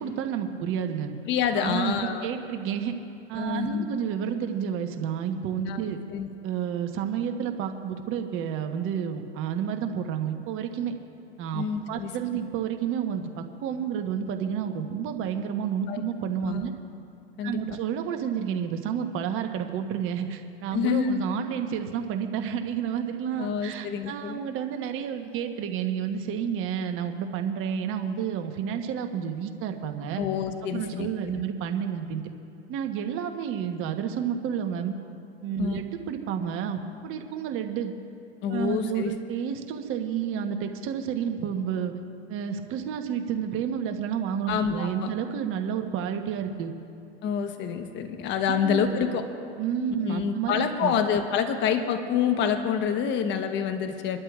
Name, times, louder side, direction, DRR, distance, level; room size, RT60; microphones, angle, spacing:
voice 1, 0.0-1.1 1.6-2.9 3.3-6.0 6.4-10.9 11.4-16.7 17.4-30.2 30.7-32.2 32.7-34.9 35.4-37.9 38.5-41.9 42.3-46.7 48.5-49.1 49.6-50.9, right 8 dB, 40° right, 6 dB, 1.1 m, -30 dB
voice 2, 1.3-2.3 3.4-3.9 5.7-5.8 6.1-6.3 11.5-12.1 15.9-16.0 16.5-16.7 17.4-17.6 20.7-21.3 23.4-24.4 30.2-31.1 35.6-35.8 38.4-39.1 44.5-45.1 47.2-49.2 50.0-54.2, left 7 dB, 35° left, 6 dB, 1.1 m, -27 dB
27.5 x 12.0 x 2.5 m, 2.6 s
hypercardioid pair, 110°, 34 cm